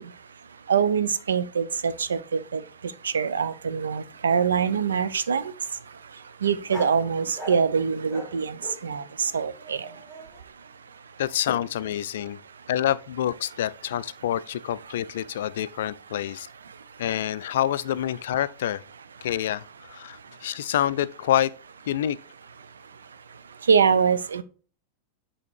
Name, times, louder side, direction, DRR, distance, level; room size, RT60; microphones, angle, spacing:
voice 1, 0.7-2.6 3.0-5.5 6.4-9.9 23.7-24.4, right 6 dB, 70° right, 0.4 m, -24 dB
sound 1, 3.8-3.9 4.2-4.9 6.7-7.0 7.3-7.7 8.1-10.4, equal, 10° right, 1.5 m, -41 dB
voice 2, 11.2-12.4 12.7-16.5 17.0-18.8 19.2-21.5 21.9-22.2, left 11 dB, 60° left, 0.3 m, -27 dB
8.1 x 2.8 x 4.7 m
figure-of-eight pair, 90°, 0 cm